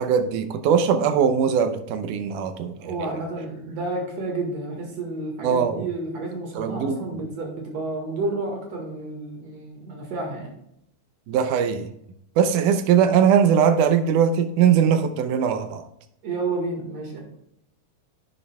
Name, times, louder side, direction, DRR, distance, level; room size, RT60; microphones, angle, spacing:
voice 1, 0.0-3.1 5.4-5.9 6.6-7.2 11.3-11.9 12.4-15.8, right 7 dB, 75° right, 8 dB, 2.2 m, -21 dB
voice 2, 2.8-10.5 16.2-17.2, right 2 dB, 55° right, 1 dB, 2.7 m, -30 dB
10.5 x 9.4 x 2.3 m, 0.76 s
omnidirectional pair, 3.8 m